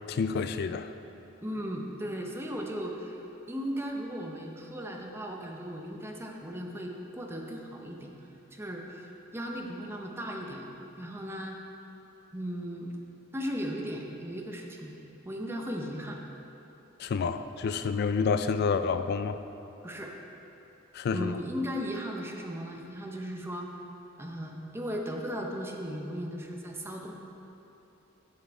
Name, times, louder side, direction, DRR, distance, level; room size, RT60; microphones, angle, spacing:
voice 1, 0.1-0.9 17.0-19.4 20.9-21.4, left 5 dB, 55° left, 10 dB, 0.3 m, -29 dB
voice 2, 1.4-3.2 3.5-8.1 8.5-10.7 11.0-11.6 12.3-12.9 13.3-14.9 15.3-16.2 19.8-20.1 21.1-23.7 24.2-27.1, equal, 10° right, 0 dB, 0.7 m, -36 dB
7.2 x 7.0 x 4.5 m, 3.0 s
head